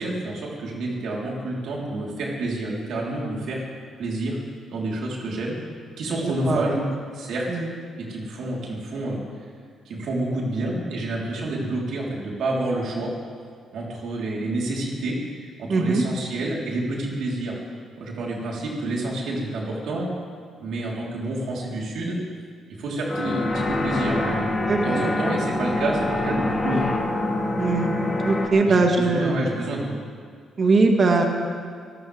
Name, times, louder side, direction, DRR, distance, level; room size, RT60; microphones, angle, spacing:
voice 1, 0.0-3.6 4.0-4.4 4.7-5.6 6.0-6.8 7.1-7.5 8.0-9.2 9.9-13.1 13.7-17.6 18.0-20.1 20.6-22.2 22.7-26.9 28.6-30.0, right 2 dB, 75° right, -3 dB, 4.1 m, -28 dB
voice 2, 6.1-6.8 7.5-7.7 15.7-16.0 24.7-25.1 27.6-27.9 28.2-29.4 30.6-31.2, right 3 dB, 45° right, 2 dB, 2.0 m, -21 dB
sound 1, 23.1-28.5, left 2 dB, 25° left, 2.7 m, -25 dB
24.0 x 15.0 x 3.6 m, 2.1 s
cardioid pair, 90°, 0 cm